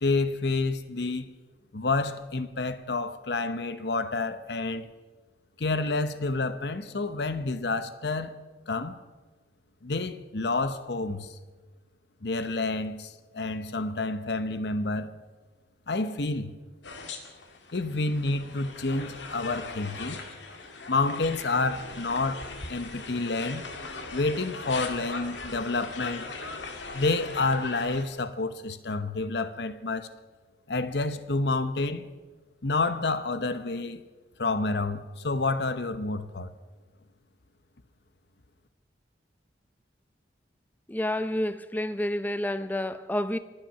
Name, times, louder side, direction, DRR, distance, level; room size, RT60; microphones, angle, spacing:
voice 1, 0.0-1.3 1.7-4.9 5.6-8.4 8.7-9.0 9.8-11.3 12.2-15.1 15.9-16.5 17.7-20.2 20.9-23.6 24.1-26.2 26.9-30.1 30.7-32.1 32.6-34.0 34.4-36.5, left 3 dB, 65° left, 0.9 m, -29 dB
sound 1, 16.8-28.0, left 3 dB, 90° left, 1.8 m, -39 dB
voice 2, 40.9-43.4, left 1 dB, 10° left, 0.6 m, -29 dB
25.0 x 8.9 x 5.8 m
head